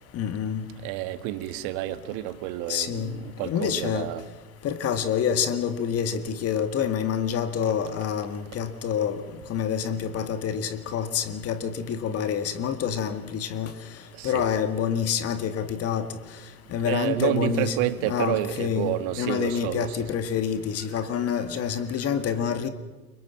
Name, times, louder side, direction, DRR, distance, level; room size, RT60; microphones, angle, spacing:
voice 1, 0.1-0.6 2.7-3.2 3.4-4.1 4.6-9.2 9.5-13.7 14.2-16.1 16.7-17.8 18.0-22.7, left 8 dB, 30° left, 9 dB, 2.0 m, -27 dB
voice 2, 0.8-4.2 14.1-14.5 16.8-20.1, right 14 dB, 45° right, 11 dB, 1.9 m, -29 dB
30.0 x 24.0 x 5.9 m, 1.2 s
hypercardioid pair, 100°, 46 cm